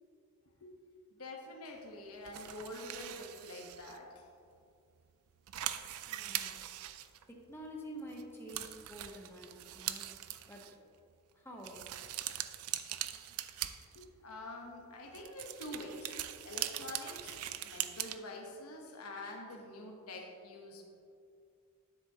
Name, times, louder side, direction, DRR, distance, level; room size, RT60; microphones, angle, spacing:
voice 1, 1.1-4.2 13.9-16.2 16.4-20.8, left 2 dB, 85° left, 1 dB, 1.0 m, -46 dB
sound 1, 2.3-4.0 4.6-4.7 5.0-5.1 5.3-7.6 8.1-8.2 8.5-10.7 11.6-14.3 15.1-18.2, right 12 dB, 75° right, 0.4 m, -41 dB
voice 2, 6.0-6.6 7.3-10.1 10.5-10.7 11.3-11.9, equal, 10° left, -1 dB, 0.8 m, -48 dB
9.8 x 7.9 x 2.8 m, 2.5 s
head